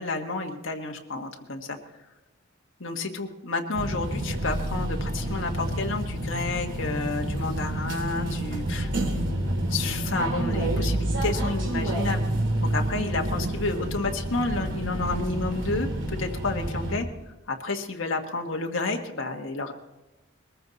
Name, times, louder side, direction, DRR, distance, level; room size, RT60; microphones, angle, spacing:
voice 1, 0.0-1.8 2.8-8.9 9.7-12.2 12.7-17.1 17.5-19.7, left 3 dB, 70° left, 2 dB, 1.5 m, -30 dB
sound 1, 3.7-17.0, right 1 dB, 60° right, 3.0 m, -29 dB
21.5 x 14.5 x 4.1 m, 1.1 s
head